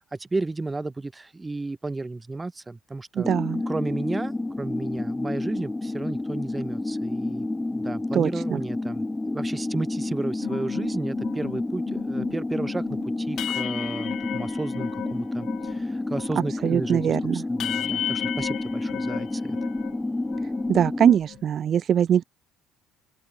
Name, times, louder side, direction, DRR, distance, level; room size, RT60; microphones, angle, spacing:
voice 1, 0.1-3.3 3.7-19.6, right 3 dB, 20° right, 2.7 m, -33 dB
sound 1, 3.2-21.2, left 2 dB, 15° left, 1.9 m, -30 dB
voice 2, 3.2-3.6 8.1-8.6 16.6-17.4 20.7-22.2, right 9 dB, 45° right, 0.3 m, -22 dB
sound 2, 10.4-15.8 16.1-20.0 20.3-21.4, left 12 dB, 55° left, 0.9 m, -35 dB
open air
figure-of-eight pair, 55°, 0 cm